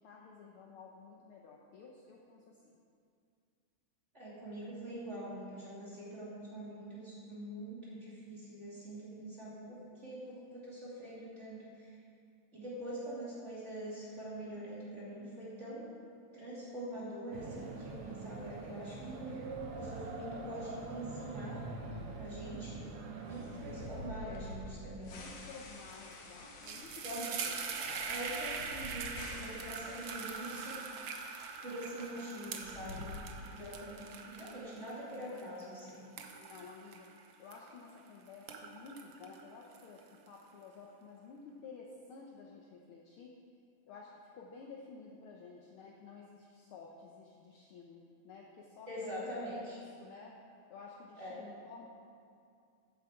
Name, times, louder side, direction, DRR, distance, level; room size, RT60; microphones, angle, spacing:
voice 1, 0.0-2.6 25.0-27.6 36.3-37.1 37.4-43.4 43.9-49.3 50.0-50.4 50.7-51.9, left 4 dB, 70° left, 0 dB, 1.3 m, -52 dB
voice 2, 4.1-11.9 12.5-15.9 16.3-19.5 19.8-21.7 22.2-22.9 23.3-25.3 27.0-27.4 27.8-30.8 31.6-33.1 33.4-36.1 48.9-49.8 51.2-51.5, right 1 dB, 25° right, -8 dB, 2.7 m, -44 dB
sound 1, 17.3-24.1, right 3 dB, 60° right, 1.7 m, -44 dB
sound 2, 23.3-31.5 31.7-31.8 32.5-33.8, left 2 dB, 90° left, 2.8 m, -49 dB
sound 3, 25.9-26.1 26.4-38.0 38.3-40.3, right 5 dB, 75° right, 1.0 m, -43 dB
15.0 x 8.0 x 4.8 m, 2.4 s
omnidirectional pair, 3.3 m